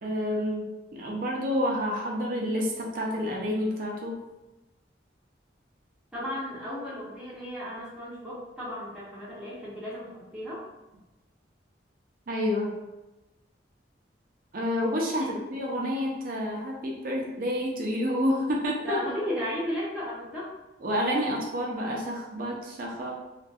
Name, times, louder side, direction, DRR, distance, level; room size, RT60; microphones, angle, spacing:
voice 1, 0.0-4.2 12.3-12.7 14.5-19.0 20.8-23.1, equal, 50° right, -2 dB, 0.5 m, -29 dB
voice 2, 6.1-10.6 15.2-15.4 18.8-20.5, left 1 dB, 5° right, -10 dB, 0.6 m, -35 dB
2.5 x 2.2 x 2.3 m, 1.1 s
head